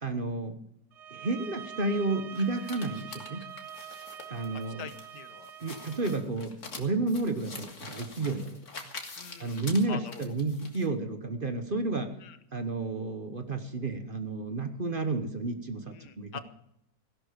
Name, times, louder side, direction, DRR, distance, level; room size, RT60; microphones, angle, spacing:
voice 1, 0.0-0.6 1.1-3.4 4.3-4.9 5.6-8.6 9.4-12.1 12.5-16.4, right 3 dB, 35° right, 7 dB, 1.1 m, -31 dB
sound 1, 0.9-6.3, right 9 dB, 60° right, 0.7 m, -45 dB
sound 2, 2.3-10.9, left 3 dB, 45° left, 2.1 m, -45 dB
voice 2, 4.8-5.5 8.2-8.4 9.2-9.6 9.9-10.4 12.2-12.4 15.9-16.4, left 8 dB, 70° left, 11 dB, 1.5 m, -44 dB
16.5 x 11.5 x 5.1 m, 0.75 s
omnidirectional pair, 1.9 m